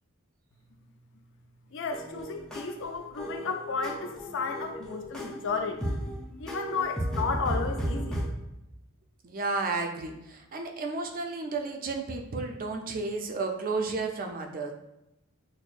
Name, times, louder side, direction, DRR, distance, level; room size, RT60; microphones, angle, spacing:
voice 1, 1.7-5.9 6.4-8.2, left 4 dB, 60° left, 5 dB, 0.5 m, -33 dB
sound 1, 1.9-8.3, equal, 5° left, 0.6 m, -34 dB
voice 2, 9.2-14.7, right 3 dB, 40° right, 4 dB, 0.5 m, -32 dB
6.1 x 2.1 x 2.5 m, 0.90 s
head